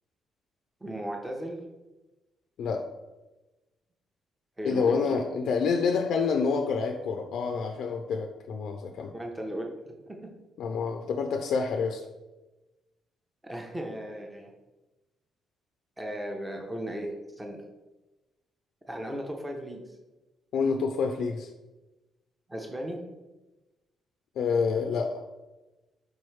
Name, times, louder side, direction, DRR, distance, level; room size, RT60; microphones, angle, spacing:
voice 1, 0.8-1.6 4.6-5.2 9.1-10.3 13.4-14.5 16.0-17.6 18.9-19.8 22.5-23.0, right 1 dB, 15° right, 1 dB, 0.7 m, -36 dB
voice 2, 4.6-9.1 10.6-12.1 20.5-21.5 24.4-25.2, left 5 dB, 75° left, 4 dB, 0.3 m, -28 dB
4.6 x 3.1 x 3.1 m, 1.1 s
cardioid pair, 90°, 0 cm